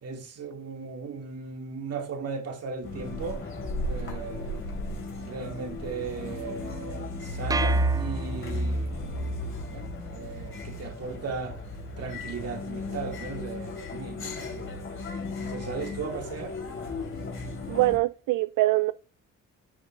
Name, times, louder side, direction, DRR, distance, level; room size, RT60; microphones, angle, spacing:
voice 1, 0.0-3.4 3.8-4.6 5.2-11.6 12.0-14.9 15.4-16.6, right 5 dB, 55° right, 2.3 m, -37 dB
sound 1, 2.8-18.0, left 1 dB, 45° left, 3.5 m, -33 dB
sound 2, 7.5-8.9, right 4 dB, 15° right, 0.4 m, -33 dB
voice 2, 17.7-18.9, right 19 dB, 80° right, 0.4 m, -23 dB
15.5 x 5.3 x 2.4 m
cardioid pair, 90°, 30 cm